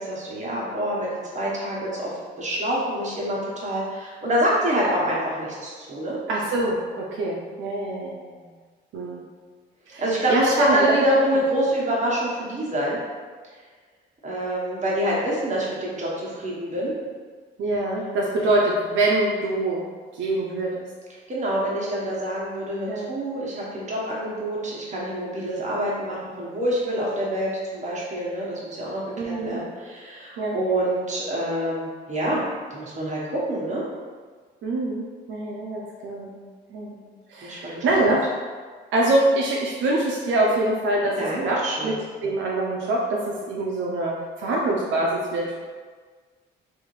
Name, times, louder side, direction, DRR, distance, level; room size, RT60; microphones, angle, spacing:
voice 1, 0.0-6.2 10.0-13.0 14.2-16.9 21.3-32.4 32.7-33.8 37.4-37.8 41.2-41.9, right 1 dB, 35° right, -5 dB, 1.2 m, -26 dB
voice 2, 6.3-8.4 8.9-9.2 9.9-10.0 10.3-11.0 17.6-19.8 20.1-20.9 22.9-23.1 29.2-29.6 30.4-30.6 34.6-35.0 35.3-36.3 36.7-36.9 37.3-38.2 38.9-41.2 41.4-41.9 42.2-44.1 44.4-45.5, right 2 dB, 75° right, -3 dB, 0.5 m, -24 dB
3.5 x 2.6 x 3.2 m, 1.5 s
cardioid pair, 90°, 20 cm